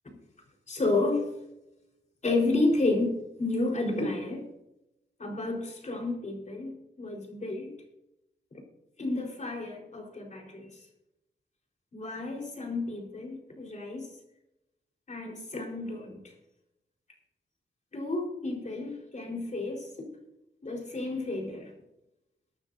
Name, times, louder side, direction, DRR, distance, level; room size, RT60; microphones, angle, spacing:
voice 1, 0.7-1.3 2.2-4.5 5.2-7.8 8.5-8.6 9.0-10.9 11.9-14.1 15.1-16.3 17.9-20.1 20.6-21.7, left 2 dB, 40° left, 0 dB, 4.3 m, -31 dB
23.0 x 9.7 x 2.7 m, 0.89 s
wide cardioid pair, 105°, 19 cm